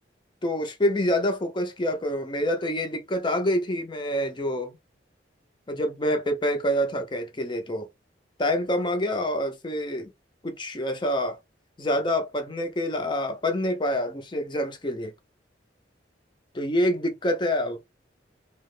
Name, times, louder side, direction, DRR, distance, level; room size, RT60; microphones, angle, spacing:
voice 1, 0.4-4.8 5.7-7.9 8.4-10.1 10.4-11.4 11.8-15.1 16.5-17.9, left 1 dB, 25° left, 0.6 m, -26 dB
2.9 x 2.1 x 3.1 m
head